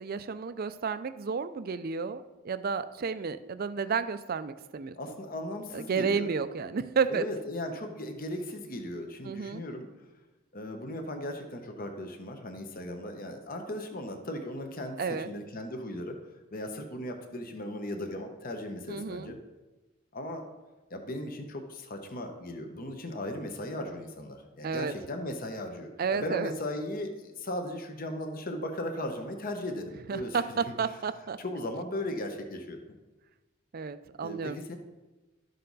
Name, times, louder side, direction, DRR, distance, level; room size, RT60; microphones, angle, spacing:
voice 1, 0.0-5.0 5.7-7.2 9.3-9.6 15.0-15.3 18.9-19.3 24.6-24.9 26.0-26.5 30.1-31.4 33.7-34.6, right 5 dB, 45° right, 12 dB, 0.4 m, -31 dB
voice 2, 4.9-6.3 7.1-9.9 10.5-16.2 16.5-19.4 20.1-20.4 20.9-30.7 31.4-32.8 34.2-34.8, left 1 dB, 45° left, 5 dB, 1.0 m, -37 dB
12.5 x 6.6 x 4.0 m, 1.2 s
head